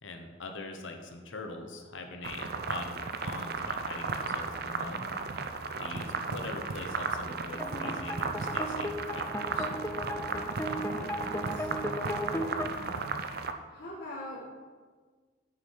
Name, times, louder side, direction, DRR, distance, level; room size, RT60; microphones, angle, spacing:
voice 1, 0.0-5.1 5.8-9.7, left 3 dB, 70° left, 4 dB, 0.9 m, -42 dB
sound 1, 2.2-13.5, right 4 dB, 50° right, 0.5 m, -35 dB
voice 2, 4.8-5.4 5.9-6.5 10.3-14.5, equal, 50° left, -7 dB, 1.4 m, -45 dB
sound 2, 7.6-12.7, equal, 10° left, 0.4 m, -36 dB
9.4 x 6.6 x 4.6 m, 1.5 s
head